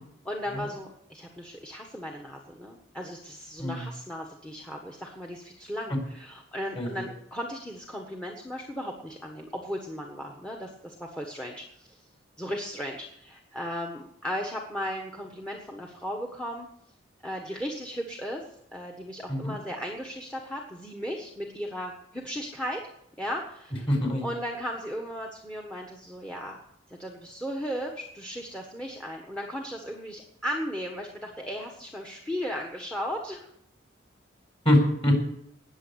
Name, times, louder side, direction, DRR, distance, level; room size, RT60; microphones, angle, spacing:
voice 1, 0.2-12.0 12.4-16.7 17.2-18.4 18.7-22.8 23.2-23.9 24.2-26.6 26.9-33.5, equal, 5° left, 2 dB, 1.4 m, -36 dB
voice 2, 23.9-24.3 34.6-35.1, left 1 dB, 30° left, 3 dB, 4.2 m, -24 dB
19.0 x 7.2 x 8.1 m, 0.75 s
head